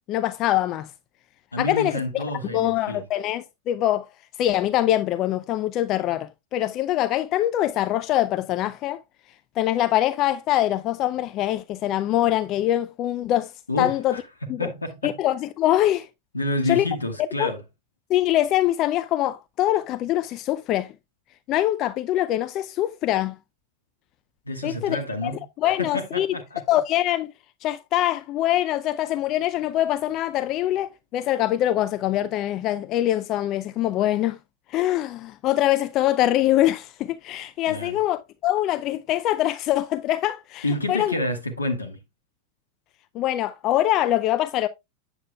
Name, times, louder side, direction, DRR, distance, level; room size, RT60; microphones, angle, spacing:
voice 1, 0.1-0.9 1.6-2.2 2.5-4.1 4.4-9.0 9.6-13.5 13.8-14.2 14.5-14.7 15.0-16.1 16.7-16.9 17.4-17.5 18.1-20.9 21.5-23.4 24.6-25.3 25.6-26.3 26.7-27.3 27.6-34.4 34.7-41.1 43.1-44.7, left 13 dB, 40° left, 0.4 m, -23 dB
voice 2, 1.5-3.0 13.7-15.2 16.3-17.6 24.5-25.4 25.8-26.6 37.7-38.0 40.6-42.0, left 1 dB, 90° left, 1.0 m, -29 dB
8.4 x 7.0 x 2.3 m
figure-of-eight pair, 90°, 0 cm